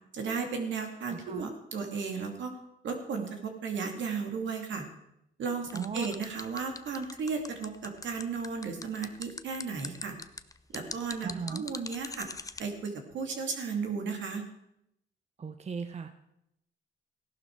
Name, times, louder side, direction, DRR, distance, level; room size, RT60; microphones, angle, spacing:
voice 1, 0.1-2.5 2.8-4.8 5.4-10.1 10.7-12.3 12.6-14.4, right 5 dB, 70° right, 4 dB, 2.5 m, -34 dB
voice 2, 1.1-1.5 5.7-6.1 11.2-11.6 15.4-16.1, right 5 dB, 35° right, 9 dB, 0.8 m, -37 dB
sound 1, 5.7-12.6, left 3 dB, 15° left, 0.7 m, -41 dB
16.0 x 11.5 x 4.7 m, 0.80 s
cardioid pair, 90°, 20 cm